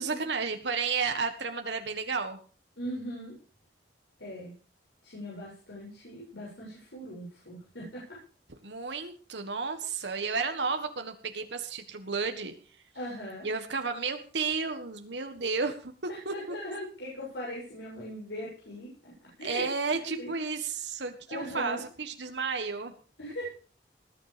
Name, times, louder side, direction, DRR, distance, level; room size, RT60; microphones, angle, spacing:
voice 1, 0.0-2.4 8.6-12.5 13.4-15.9 16.2-16.5 19.4-22.9, right 4 dB, 75° right, 6 dB, 1.7 m, -32 dB
voice 2, 2.8-3.3 4.2-4.5 5.0-8.2 12.9-13.5 16.1-19.1 19.4-19.7 20.1-20.3 21.3-21.8 23.2-23.5, equal, 85° left, -5 dB, 7.6 m, -39 dB
20.0 x 10.0 x 5.2 m, 0.40 s
head